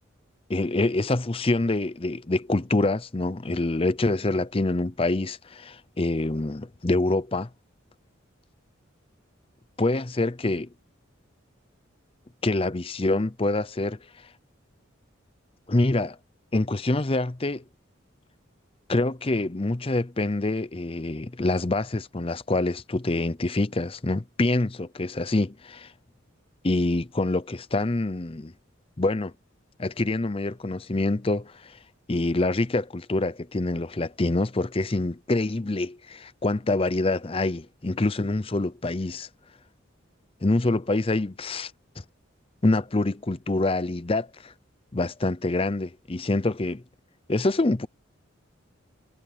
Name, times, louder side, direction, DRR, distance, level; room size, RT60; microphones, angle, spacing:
voice 1, 0.5-7.5 9.8-10.7 12.4-14.0 15.7-16.2 16.5-17.6 18.9-25.9 26.6-28.5 29.0-29.3 29.8-31.8 32.1-39.3 40.4-41.7 42.6-44.5 44.9-46.8 47.3-47.9, left 2 dB, 30° left, 0.7 m, -26 dB
head